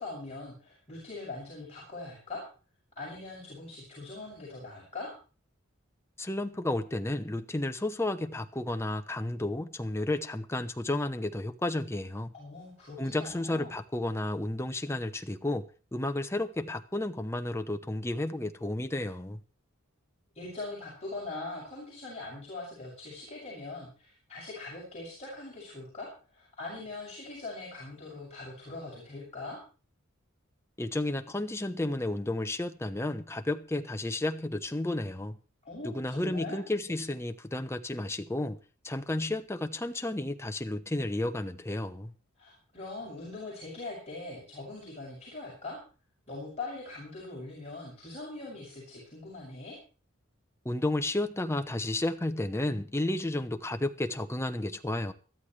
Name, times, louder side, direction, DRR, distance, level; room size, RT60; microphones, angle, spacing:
voice 1, 0.0-2.5 3.0-5.1 12.3-13.7 20.3-29.6 35.6-36.6 42.4-45.8 46.3-49.8, left 2 dB, 30° left, 7.2 m, -42 dB
voice 2, 6.2-12.3 13.0-19.4 30.8-35.4 35.8-38.6 38.8-42.1 50.6-55.1, left 1 dB, 15° left, 0.8 m, -32 dB
21.5 x 13.5 x 3.3 m
head